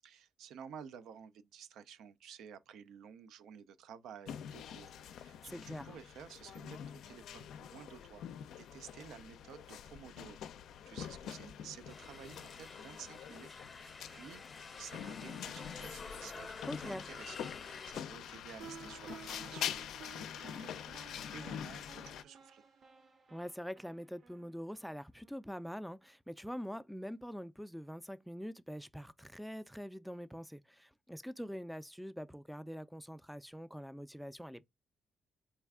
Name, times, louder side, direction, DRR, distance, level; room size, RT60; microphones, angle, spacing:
voice 1, 0.0-8.3 8.6-10.4 10.8-14.4 14.8-21.0 21.3-22.6, right 8 dB, 80° right, 0.4 m, -53 dB
sound 1, 4.3-22.2, left 9 dB, 80° left, 0.4 m, -45 dB
voice 2, 5.5-5.9 16.6-17.0 23.3-34.6, equal, ahead, 0.3 m, -44 dB
sound 2, 11.9-17.9, left 4 dB, 35° left, 0.7 m, -49 dB
sound 3, 18.6-25.4, right 6 dB, 55° right, 0.8 m, -55 dB
4.2 x 2.3 x 3.4 m
cardioid pair, 90°, 0 cm